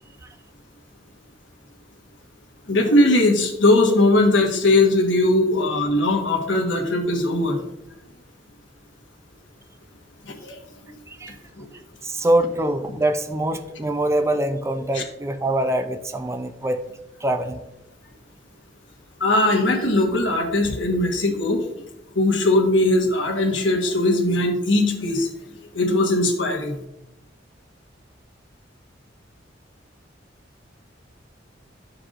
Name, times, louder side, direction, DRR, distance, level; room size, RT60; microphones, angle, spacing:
voice 1, 2.7-7.6 10.2-10.6 11.6-11.7 14.9-15.0 19.2-21.6 22.1-25.3 25.7-26.8, left 2 dB, 90° left, 1 dB, 1.4 m, -19 dB
voice 2, 11.1-11.4 12.0-16.8 17.2-17.6, right 1 dB, 15° right, 8 dB, 0.4 m, -24 dB
12.5 x 4.7 x 2.5 m, 0.87 s
head